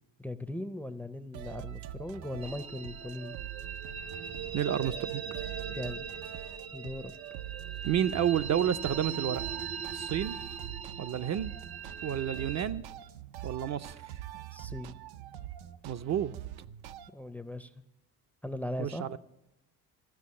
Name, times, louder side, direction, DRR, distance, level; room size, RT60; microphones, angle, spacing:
voice 1, 0.2-3.4 5.7-6.1 6.7-7.1 14.5-15.0 17.1-17.8 18.4-19.1, left 1 dB, 5° left, 0.5 m, -39 dB
sound 1, 1.3-17.1, right 12 dB, 90° right, 0.6 m, -44 dB
sound 2, 2.4-12.6, right 7 dB, 65° right, 0.9 m, -40 dB
voice 2, 4.5-5.2 7.9-9.4 9.9-10.4 11.0-11.5 12.0-12.8 13.4-14.0 15.8-16.4 18.8-19.2, right 9 dB, 45° right, 0.5 m, -30 dB
14.5 x 6.1 x 8.4 m
cardioid pair, 100°, 37 cm